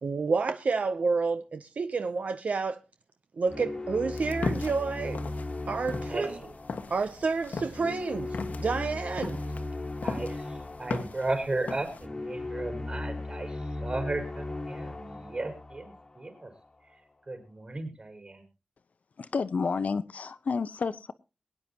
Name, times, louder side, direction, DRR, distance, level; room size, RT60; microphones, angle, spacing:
voice 1, 0.0-2.8 3.3-5.2 5.7-6.4 6.9-9.4, right 4 dB, 65° right, 0.6 m, -29 dB
sound 1, 3.5-16.6, left 2 dB, 30° left, 1.4 m, -37 dB
sound 2, 4.1-12.1, left 4 dB, 85° left, 1.4 m, -38 dB
voice 2, 10.0-16.5 17.3-18.4, right 2 dB, 40° right, 4.7 m, -35 dB
voice 3, 19.2-21.1, left 5 dB, 70° left, 0.8 m, -30 dB
22.5 x 9.7 x 2.8 m
wide cardioid pair, 125°, 3 cm